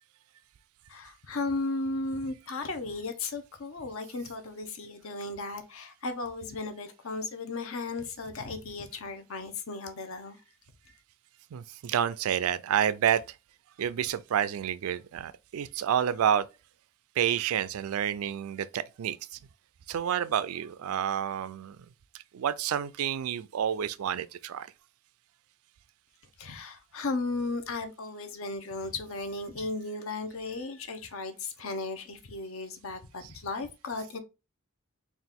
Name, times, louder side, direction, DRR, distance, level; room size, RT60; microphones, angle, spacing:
voice 1, 0.9-10.4 26.4-34.2, left 3 dB, 65° left, 0.7 m, -35 dB
voice 2, 11.5-13.2 13.8-16.5 17.2-19.4 19.9-21.8 22.3-24.7 33.2-33.3, right 9 dB, 75° right, 0.3 m, -29 dB
4.0 x 2.4 x 3.5 m
head